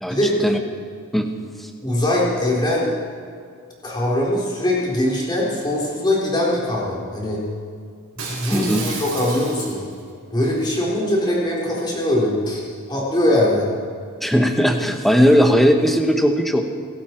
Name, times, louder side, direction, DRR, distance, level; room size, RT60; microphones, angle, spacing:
voice 1, 0.0-0.6 1.1-1.3 1.6-1.7 8.5-8.9 14.2-16.6, equal, ahead, 4 dB, 1.1 m, -18 dB
voice 2, 1.8-2.9 3.8-7.4 8.3-9.8 10.3-12.6 12.9-13.7, left 1 dB, 20° left, -4 dB, 3.8 m, -21 dB
Shatter, 8.2-10.0 10.4-10.7, right 4 dB, 70° right, 5.2 m, -32 dB
25.0 x 12.5 x 4.5 m, 2.2 s
head